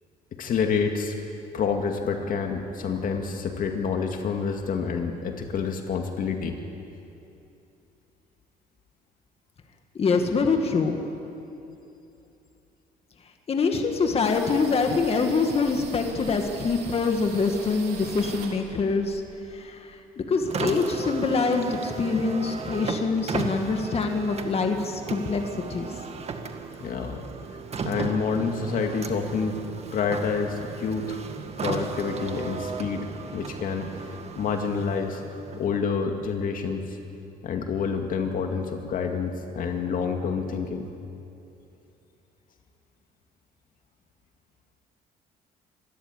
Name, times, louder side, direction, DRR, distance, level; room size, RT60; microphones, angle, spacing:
voice 1, 0.4-1.1 1.5-6.6 26.8-27.2 27.8-29.6 29.9-31.2 31.6-35.2 35.6-37.0 37.4-40.9, left 5 dB, 55° left, 4 dB, 2.1 m, -28 dB
voice 2, 9.9-11.0 13.5-19.2 19.5-25.4 25.7-25.9, left 4 dB, 35° left, 4 dB, 2.0 m, -25 dB
sound 1, 14.2-19.7, right 6 dB, 75° right, 3.6 m, -42 dB
Car, 20.4-35.8, right 4 dB, 40° right, 1.9 m, -35 dB
26.0 x 13.5 x 9.9 m, 2.7 s
cardioid pair, 110°, 17 cm